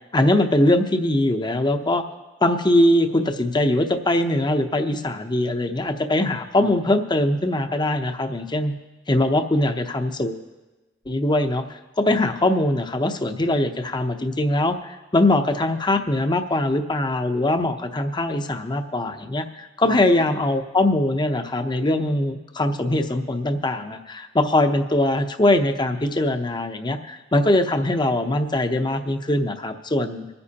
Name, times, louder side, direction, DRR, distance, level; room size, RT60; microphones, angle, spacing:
voice 1, 0.1-2.0 2.4-8.7 9.1-10.4 11.1-11.6 12.0-30.3, left 1 dB, 25° left, 7 dB, 0.8 m, -22 dB
26.0 x 9.7 x 2.9 m, 1.1 s
head